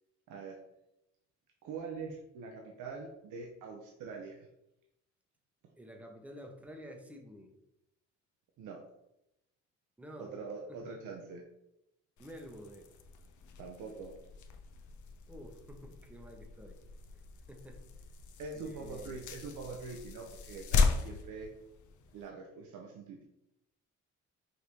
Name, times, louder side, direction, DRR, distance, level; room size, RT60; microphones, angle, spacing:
voice 1, 0.3-0.6 1.6-4.4 8.6-8.8 10.2-11.4 13.6-14.1 18.4-21.5 22.1-23.2, right 4 dB, 75° right, 0 dB, 0.7 m, -44 dB
voice 2, 5.8-7.5 10.0-10.4 10.7-10.9 12.2-12.9 15.3-16.8 17.1-17.9 18.5-19.3, equal, 5° right, 3 dB, 0.7 m, -50 dB
sound 1, 12.2-22.3, left 4 dB, 75° left, 0.6 m, -37 dB
5.2 x 2.6 x 3.0 m, 0.86 s
cardioid pair, 90°, 30 cm